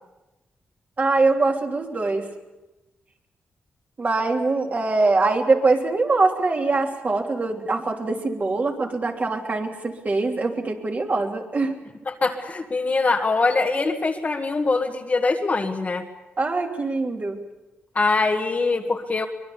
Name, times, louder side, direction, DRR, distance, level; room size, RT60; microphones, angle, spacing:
voice 1, 1.0-2.3 4.0-11.7 16.4-17.4, right 3 dB, 40° right, 2 dB, 3.1 m, -23 dB
voice 2, 12.1-16.1 18.0-19.3, left 3 dB, 40° left, 2 dB, 1.7 m, -23 dB
24.0 x 21.5 x 7.0 m, 1.1 s
cardioid pair, 95°, 4 cm